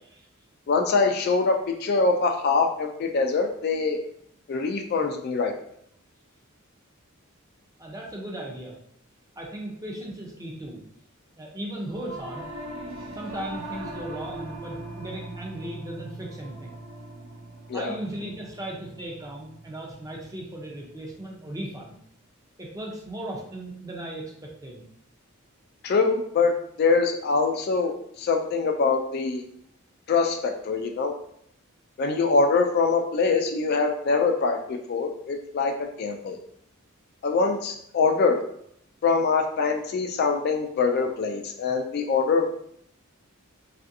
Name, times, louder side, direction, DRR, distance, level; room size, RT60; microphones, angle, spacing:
voice 1, 0.7-4.0 4.5-5.5 17.7-18.0 25.8-26.5 26.8-27.9 28.2-29.4 30.1-31.1 32.0-36.4 37.2-38.4 39.0-42.5, left 4 dB, 50° left, 3 dB, 0.3 m, -24 dB
voice 2, 7.8-8.8 9.4-10.8 11.4-12.5 13.1-16.8 17.7-22.0 22.6-24.9, right 1 dB, 15° right, -2 dB, 0.6 m, -37 dB
Singing / Musical instrument, 11.9-21.4, right 2 dB, 70° right, 0.5 m, -41 dB
3.2 x 2.5 x 2.6 m, 0.69 s
head